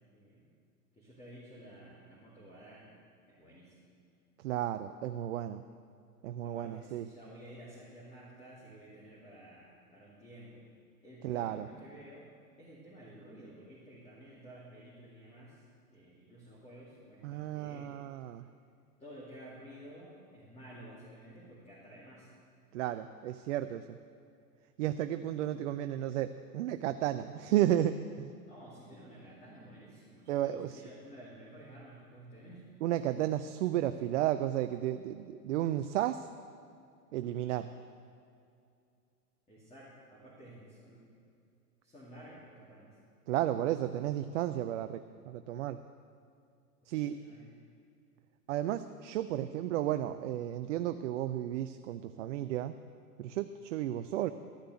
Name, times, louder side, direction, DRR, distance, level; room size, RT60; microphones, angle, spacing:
voice 1, 0.1-0.5 1.0-2.9 3.3-3.8 6.4-10.6 11.0-12.3 12.6-15.6 15.9-17.9 19.0-22.3 28.5-32.7 39.5-41.0 41.8-43.0 46.9-47.5, right 1 dB, 15° left, -6 dB, 2.5 m, -52 dB
voice 2, 4.4-5.6 6.2-7.1 11.2-11.7 17.2-18.4 22.7-24.0 24.8-28.3 30.3-30.8 32.8-36.3 37.1-37.7 43.3-45.8 46.9-47.2 48.5-52.7 53.2-54.3, right 12 dB, 50° right, 10 dB, 0.5 m, -33 dB
13.0 x 6.7 x 8.0 m, 2.4 s
hypercardioid pair, 115°, 47 cm